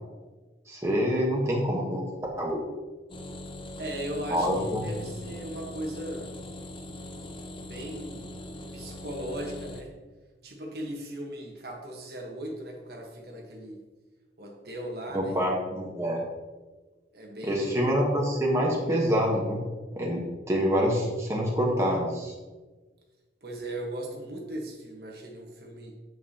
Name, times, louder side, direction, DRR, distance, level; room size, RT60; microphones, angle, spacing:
voice 1, 0.7-2.6 4.3-4.9 15.1-16.2 17.4-19.6 19.9-22.3, equal, 15° right, -2 dB, 1.2 m, -26 dB
sound 1, 3.1-9.8, left 1 dB, 30° left, 0.6 m, -41 dB
voice 2, 3.8-6.4 7.6-8.4 8.7-10.0 10.4-13.8 14.4-15.4 17.1-17.8 23.4-25.9, right 1 dB, 60° right, 0 dB, 1.3 m, -38 dB
8.1 x 7.7 x 2.9 m, 1.3 s
head